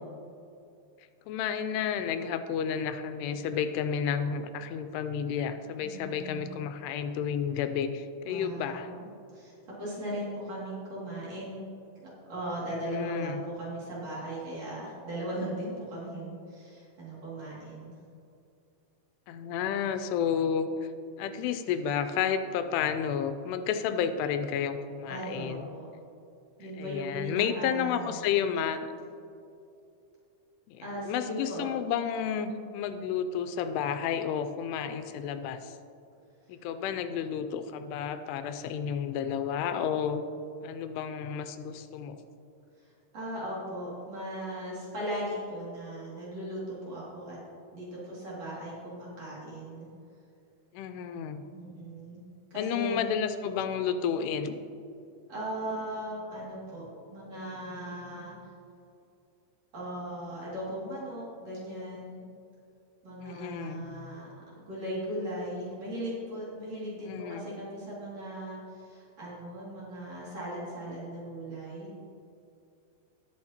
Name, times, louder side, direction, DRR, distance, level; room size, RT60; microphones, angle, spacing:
voice 1, 1.3-8.9 12.7-13.4 19.3-20.7 21.2-25.7 26.8-28.9 30.7-35.7 36.5-40.2 40.6-42.2 50.7-51.4 52.6-54.6 63.2-63.9 67.0-67.5, left 8 dB, 90° left, 9 dB, 2.7 m, -31 dB
voice 2, 5.8-6.6 8.2-8.9 9.3-11.6 12.0-17.9 25.1-25.9 26.6-28.2 30.8-31.7 43.1-47.4 47.7-49.9 51.5-52.2 52.5-53.1 55.3-56.8 57.1-58.4 59.7-62.2 63.0-71.9, right 1 dB, 45° right, -8 dB, 3.2 m, -38 dB
18.5 x 6.3 x 2.9 m, 2.6 s
omnidirectional pair, 4.7 m